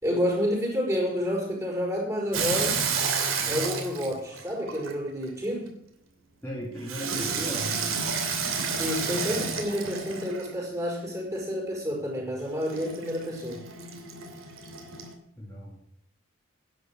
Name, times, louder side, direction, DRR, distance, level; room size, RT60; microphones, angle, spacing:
voice 1, 0.0-2.8 3.5-5.7 8.8-13.6, equal, 15° right, -1 dB, 5.2 m, -29 dB
Water tap faucet / Sink (filling or washing), 2.3-5.3 6.9-10.6 12.6-15.1, right 5 dB, 80° right, 2.8 m, -30 dB
voice 2, 6.4-7.8 15.3-15.8, equal, 10° left, -5 dB, 2.7 m, -36 dB
11.0 x 10.0 x 6.4 m, 0.73 s
head